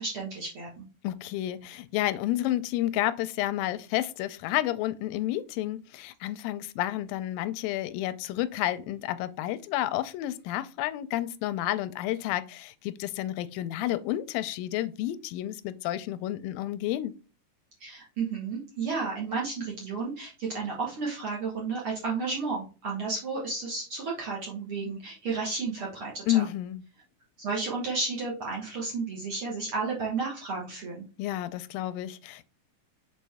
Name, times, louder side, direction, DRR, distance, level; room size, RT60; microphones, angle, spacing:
voice 1, 0.0-0.8 17.8-26.4 27.4-31.0, right 4 dB, 55° right, 1.7 m, -32 dB
voice 2, 1.0-17.2 26.3-26.8 31.2-32.5, left 14 dB, 90° left, 2.3 m, -30 dB
6.2 x 4.4 x 3.4 m
omnidirectional pair, 4.0 m